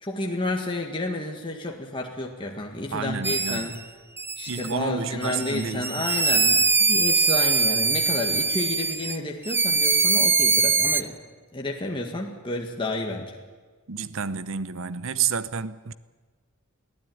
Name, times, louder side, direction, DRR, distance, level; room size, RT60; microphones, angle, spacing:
voice 1, 0.0-3.7 4.4-11.2 11.5-13.3, left 2 dB, 25° left, 1.7 m, -31 dB
voice 2, 2.9-3.7 4.5-6.1 13.9-15.9, right 6 dB, 65° right, 0.8 m, -30 dB
sound 1, 3.2-3.8 4.2-4.7 5.2-9.2 9.5-11.0, right 4 dB, 10° right, 0.6 m, -22 dB
23.0 x 15.0 x 9.3 m
head